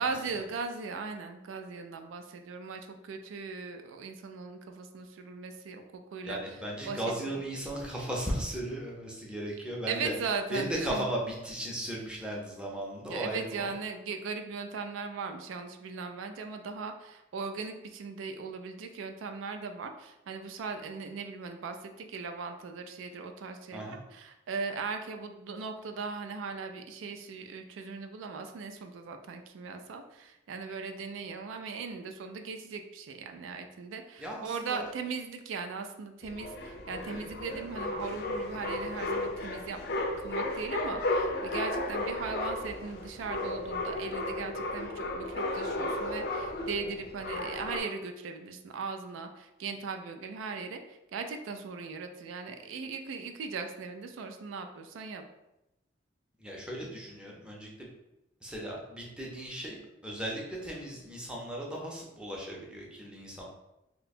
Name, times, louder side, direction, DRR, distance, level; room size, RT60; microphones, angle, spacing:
voice 1, 0.0-6.4 6.9-7.4 9.9-11.1 13.0-23.8 24.1-55.2, right 5 dB, 85° right, 6 dB, 0.3 m, -38 dB
voice 2, 6.2-10.1 10.5-13.6 23.7-24.0 34.2-34.9 56.4-57.9 58.4-63.4, right 1 dB, 5° right, -3 dB, 0.5 m, -36 dB
sound 1, 36.2-47.8, left 2 dB, 55° left, 0.4 m, -34 dB
2.8 x 2.2 x 4.1 m, 0.92 s
head